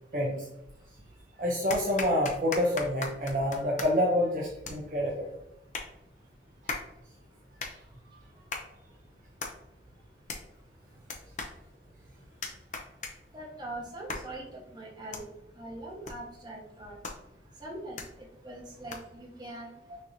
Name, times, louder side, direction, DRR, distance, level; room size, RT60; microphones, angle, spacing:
voice 1, 0.1-0.5 1.4-5.3 19.9-20.0, left 1 dB, 45° right, -2 dB, 0.6 m, -27 dB
sound 1, 0.6-1.2 1.7-19.3, left 3 dB, 45° left, 0.6 m, -42 dB
voice 2, 13.3-14.4 14.7-15.2 15.6-16.9 17.6-18.0 18.4-19.7, right 1 dB, 25° right, -4 dB, 1.2 m, -41 dB
6.2 x 2.8 x 2.7 m, 0.86 s
head